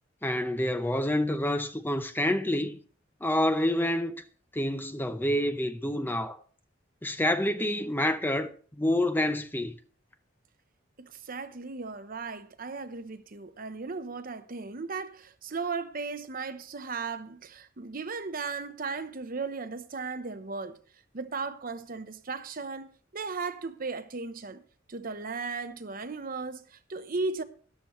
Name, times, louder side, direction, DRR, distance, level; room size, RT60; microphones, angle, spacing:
voice 1, 0.2-2.8 3.2-4.1 4.5-6.4 7.0-9.7, left 1 dB, 10° left, 0.7 m, -28 dB
voice 2, 11.0-20.8 21.1-24.6 24.9-27.4, right 4 dB, 50° right, 0.9 m, -36 dB
13.0 x 11.5 x 3.1 m
head